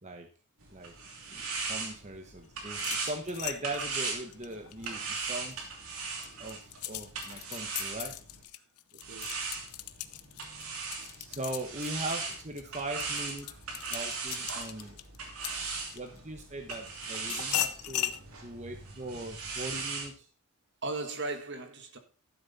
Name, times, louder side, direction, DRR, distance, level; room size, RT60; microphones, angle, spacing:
sound 1, 0.6-8.4 9.0-20.1, right 4 dB, 75° right, 3.0 m, -39 dB
voice 1, 1.3-5.7 6.4-8.1 11.2-13.5 13.9-15.0 15.9-18.2 18.4-20.3, right 2 dB, 30° right, 1.2 m, -40 dB
sound 2, 2.7-5.5 6.0-16.2 16.7-18.2, left 13 dB, 85° left, 0.8 m, -38 dB
voice 2, 8.9-9.4 12.7-12.8 13.4-13.6 18.1-18.2 20.8-22.0, right 2 dB, 50° right, 1.6 m, -38 dB
13.0 x 7.7 x 4.2 m
head